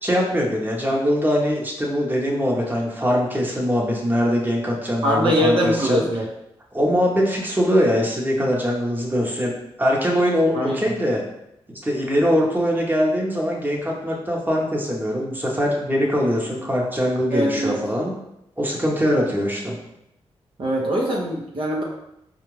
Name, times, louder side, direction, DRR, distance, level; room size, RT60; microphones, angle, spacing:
voice 1, 0.0-6.0 6.7-9.5 9.8-11.2 11.8-18.1 18.6-19.8, equal, 15° right, -2 dB, 1.0 m, -22 dB
voice 2, 5.0-6.2 10.5-10.8 17.3-17.8 20.6-21.8, equal, 50° right, -2 dB, 0.8 m, -22 dB
4.5 x 2.4 x 3.2 m, 0.83 s
cardioid pair, 60°, 11 cm